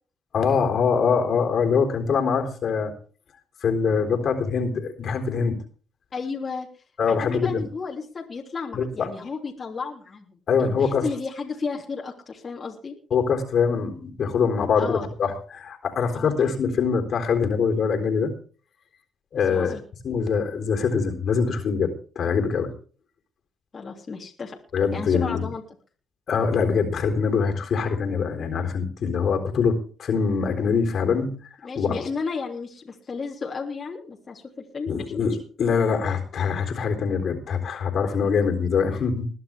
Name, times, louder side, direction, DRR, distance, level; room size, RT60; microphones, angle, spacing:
voice 1, 0.3-2.9 3.6-5.6 7.0-7.7 8.7-9.1 10.5-11.2 13.1-18.3 19.3-22.7 24.7-25.5 26.3-31.3 31.8-32.1 34.9-39.3, left 5 dB, 60° left, 5 dB, 3.8 m, -24 dB
voice 2, 6.1-6.7 7.1-12.9 14.8-15.1 16.1-16.4 19.3-19.8 23.7-24.6 24.9-25.6 31.6-35.1 38.2-38.3, left 4 dB, 40° left, -1 dB, 3.2 m, -33 dB
21.0 x 11.0 x 3.6 m, 0.39 s
cardioid pair, 90°, 0 cm